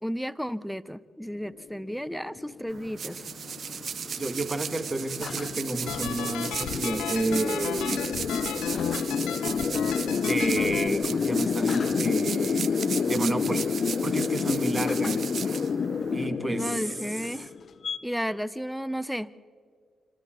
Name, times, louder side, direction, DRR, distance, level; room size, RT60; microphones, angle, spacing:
voice 1, 0.0-3.2 16.5-17.5 18.0-19.3, equal, ahead, 17 dB, 0.8 m, -33 dB
sound 1, 1.6-18.0, left 6 dB, 60° left, 0.8 m, -29 dB
sound 2, 2.7-16.3, right 6 dB, 65° right, 1.4 m, -36 dB
voice 2, 4.2-8.1 10.2-12.8 13.1-13.7 14.0-15.3 16.1-16.9, right 2 dB, 25° right, 8 dB, 2.1 m, -30 dB
sound 3, 5.9-10.9, left 12 dB, 90° left, 0.5 m, -35 dB
27.5 x 26.5 x 3.9 m, 2.2 s
supercardioid pair, 50°, 0 cm